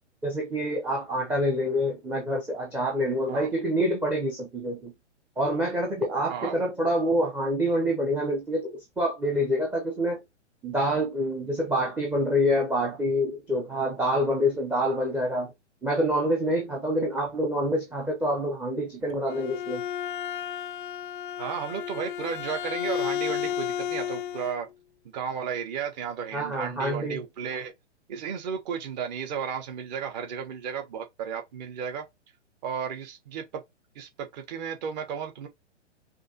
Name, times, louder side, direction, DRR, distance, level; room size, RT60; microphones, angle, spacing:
voice 1, 0.2-4.9 5.4-10.2 10.6-15.5 15.8-19.8 26.3-27.2, equal, 5° right, 0.5 m, -26 dB
voice 2, 6.3-6.6 21.4-24.7 25.1-27.7 28.1-32.0 32.6-33.6 33.9-35.5, right 7 dB, 35° right, 1.1 m, -34 dB
Bowed string instrument, 19.1-24.6, left 10 dB, 45° left, 0.4 m, -32 dB
5.1 x 2.7 x 2.7 m
figure-of-eight pair, 115°, 36 cm